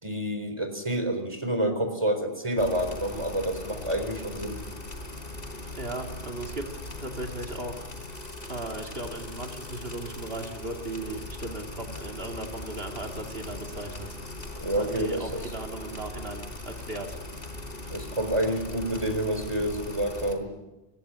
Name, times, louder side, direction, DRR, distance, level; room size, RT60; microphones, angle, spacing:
voice 1, 0.0-4.6 14.6-15.4 17.9-20.5, right 1 dB, 30° right, 7 dB, 4.4 m, -28 dB
sound 1, 2.6-20.3, left 2 dB, 65° left, 4.1 m, -40 dB
voice 2, 5.7-6.7 7.0-8.2 8.5-14.2 14.7-17.2, right 2 dB, 70° right, 2 dB, 2.6 m, -37 dB
24.0 x 21.0 x 9.9 m, 1.0 s
omnidirectional pair, 1.0 m